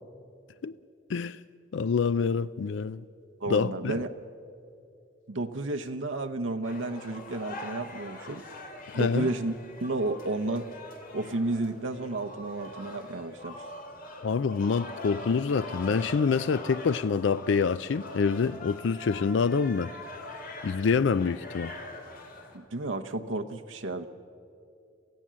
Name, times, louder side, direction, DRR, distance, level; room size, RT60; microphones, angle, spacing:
voice 1, 1.1-1.4 1.7-3.0 3.5-4.0 8.9-9.3 14.2-19.9 20.6-21.7, left 5 dB, 70° left, 0.4 m, -26 dB
voice 2, 3.4-4.1 5.3-8.5 8.9-10.7 11.1-13.6 22.5-24.1, right 2 dB, 90° right, 0.9 m, -32 dB
sound 1, 6.6-22.6, left 2 dB, 50° left, 2.6 m, -43 dB
28.0 x 15.5 x 7.5 m
head